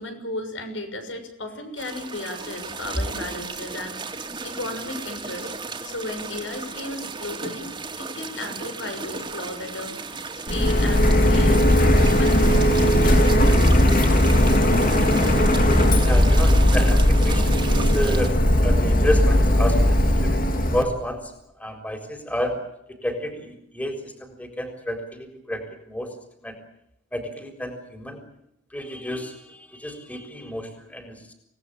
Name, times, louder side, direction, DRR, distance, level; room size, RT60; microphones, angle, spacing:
voice 1, 0.0-5.5 5.8-7.7 8.0-10.2 10.5-13.6, left 2 dB, 80° left, 7 dB, 6.6 m, -35 dB
sound 1, 1.8-18.3, right 4 dB, 25° right, 2.8 m, -34 dB
Printer, 10.5-20.8, left 1 dB, 45° left, 2.8 m, -18 dB
voice 2, 16.0-21.3 21.6-22.6 22.9-26.1 26.4-26.6 27.1-28.2 28.7-31.3, equal, 10° left, 5 dB, 4.1 m, -30 dB
28.0 x 18.5 x 8.4 m, 0.79 s
head